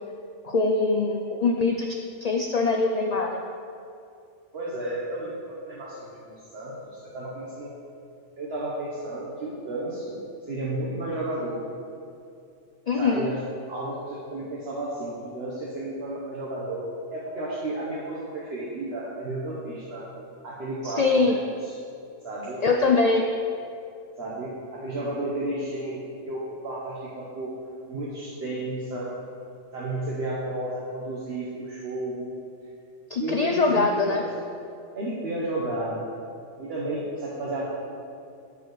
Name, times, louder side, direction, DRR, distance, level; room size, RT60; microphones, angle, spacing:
voice 1, 0.4-3.4 12.9-13.3 20.8-21.4 22.6-23.3 33.1-34.2, left 3 dB, 75° left, 3 dB, 0.3 m, -23 dB
voice 2, 4.5-7.7 8.4-10.2 10.5-11.6 13.0-13.3 13.7-20.0 20.4-21.4 22.2-22.6 24.2-27.5 27.9-29.1 29.7-32.3 33.2-34.2 34.9-36.1 36.6-37.6, right 1 dB, 55° right, -6 dB, 1.3 m, -32 dB
13.5 x 4.8 x 3.1 m, 2.5 s
omnidirectional pair, 1.3 m